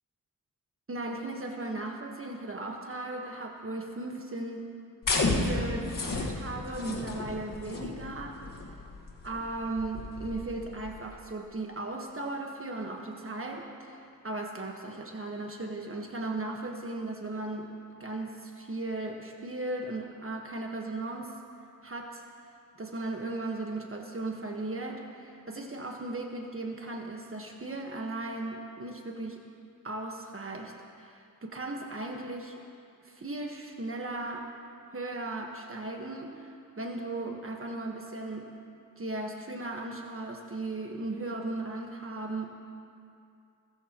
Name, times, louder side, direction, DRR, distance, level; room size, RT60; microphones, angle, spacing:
voice 1, 0.9-4.7 5.1-8.4 9.2-17.7 18.0-21.3 21.8-22.2 22.8-29.4 29.8-30.7 31.0-32.6 33.0-34.5 34.9-36.5 36.8-38.5 39.0-42.5, right 2 dB, 40° right, 1 dB, 1.5 m, -37 dB
sound 1, 5.0-11.1, left 3 dB, 90° left, 1.8 m, -33 dB
28.0 x 14.0 x 3.1 m, 2.4 s
wide cardioid pair, 75°, 32 cm